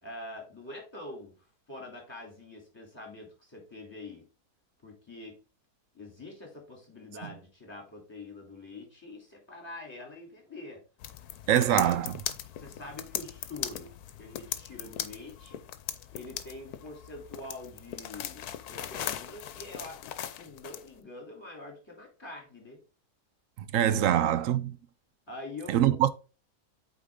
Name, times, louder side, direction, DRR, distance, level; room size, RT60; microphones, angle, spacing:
voice 1, 0.0-1.3 1.7-4.2 4.8-5.4 5.9-10.8 11.5-12.0 12.6-13.9 14.2-15.6 16.1-22.8 23.9-24.1 25.3-26.0, left 2 dB, 15° left, 2.9 m, -45 dB
sound 1, 11.0-20.9, left 11 dB, 80° left, 1.2 m, -39 dB
voice 2, 11.5-12.2 23.6-24.8 25.7-26.1, right 11 dB, 70° right, 0.9 m, -24 dB
8.4 x 3.9 x 3.6 m
omnidirectional pair, 1.6 m